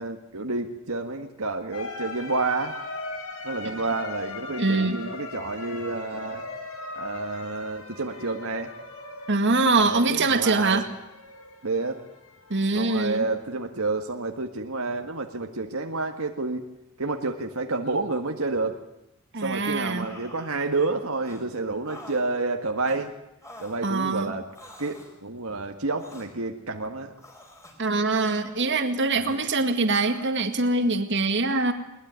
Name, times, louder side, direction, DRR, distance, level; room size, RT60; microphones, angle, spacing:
voice 1, 0.0-2.8 3.4-6.4 7.0-8.7 9.8-10.8 11.6-12.0 12.7-16.6 17.0-18.8 19.4-23.1 23.6-24.5 24.8-27.1 29.1-29.5, right 3 dB, 75° right, 4 dB, 1.7 m, -29 dB
sound 1, 1.7-13.5, left 3 dB, 75° left, 4.5 m, -39 dB
voice 2, 4.6-5.0 9.3-10.9 12.5-13.3 19.3-20.1 23.8-24.3 27.8-31.7, right 3 dB, 55° right, 7 dB, 2.1 m, -23 dB
sound 2, 19.8-20.9 21.2-21.4 21.9-22.3 22.8-23.0 23.4-23.8 24.5-25.1 26.0-26.3 27.2-27.8 28.5-29.2 30.0-30.3, left 1 dB, 15° left, 5.0 m, -47 dB
21.5 x 20.5 x 9.5 m, 0.86 s
head